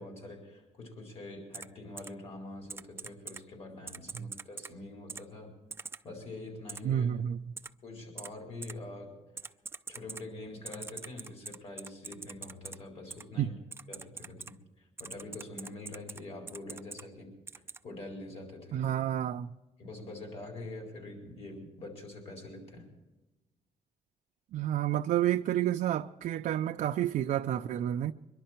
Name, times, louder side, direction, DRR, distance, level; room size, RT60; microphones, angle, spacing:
voice 1, 0.0-5.5 6.0-7.1 7.8-9.2 9.9-13.6 13.9-17.3 17.8-18.9 19.8-22.9, left 2 dB, 45° left, 4.5 m, -45 dB
Typing, 1.5-1.7 2.0-2.1 2.7-3.4 3.9-4.7 5.1-5.2 5.7-6.0 6.7-6.8 7.6-7.7 8.2-8.3 8.6-8.7 9.4-10.2 10.7-12.8 13.1-13.2 13.7-14.5 15.0-16.2 16.5-17.0 17.5-17.8, right 4 dB, 15° right, 0.4 m, -42 dB
voice 2, 6.8-7.4 13.4-13.5 18.7-19.5 24.5-28.1, right 11 dB, 70° right, 0.5 m, -30 dB
23.0 x 11.5 x 4.5 m
cardioid pair, 125°, 14 cm